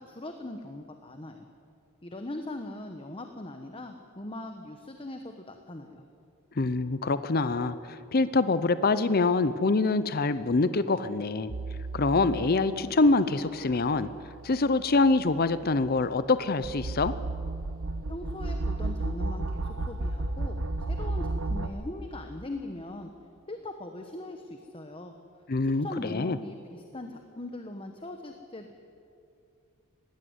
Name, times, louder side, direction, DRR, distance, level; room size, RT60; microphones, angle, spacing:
voice 1, 0.0-1.5 2.0-6.0 18.1-23.1 23.5-25.1 25.6-28.7, left 1 dB, 25° left, 5 dB, 1.1 m, -40 dB
voice 2, 6.6-11.5 11.9-14.1 14.4-17.1 25.5-26.4, left 3 dB, 45° left, 13 dB, 0.6 m, -25 dB
sound 1, 11.5-12.8 13.5-21.7, right 2 dB, 70° right, 1.2 m, -34 dB
20.0 x 16.0 x 9.4 m, 2.5 s
head